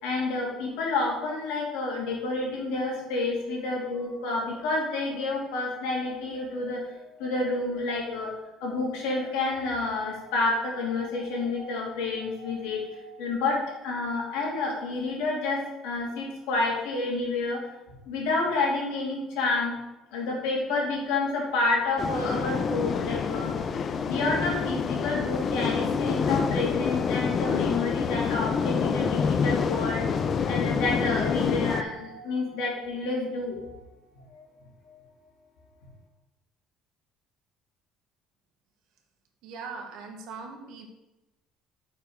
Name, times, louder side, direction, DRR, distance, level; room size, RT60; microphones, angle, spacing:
voice 1, 0.0-17.6 18.1-19.8 20.1-33.8 34.3-34.4 34.9-35.0, left 3 dB, 90° left, -2 dB, 2.9 m, -29 dB
sound 1, 22.0-31.8, left 6 dB, 35° left, 0.5 m, -27 dB
voice 2, 39.4-40.9, right 4 dB, 70° right, 3 dB, 1.6 m, -40 dB
6.9 x 4.6 x 6.3 m, 0.98 s
cardioid pair, 150°, 0 cm